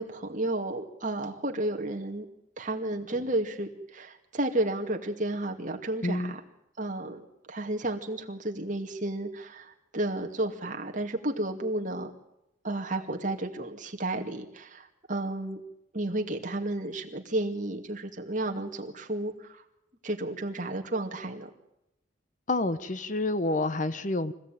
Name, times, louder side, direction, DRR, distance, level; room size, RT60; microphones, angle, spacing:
voice 1, 0.0-2.3 2.6-6.4 6.8-7.2 7.5-12.1 12.6-15.6 15.9-19.6 20.0-21.5, right 1 dB, 40° right, 3 dB, 2.4 m, -32 dB
voice 2, 6.0-6.3 22.5-24.3, left 2 dB, 40° left, 13 dB, 0.9 m, -28 dB
24.5 x 16.5 x 9.3 m, 0.87 s
head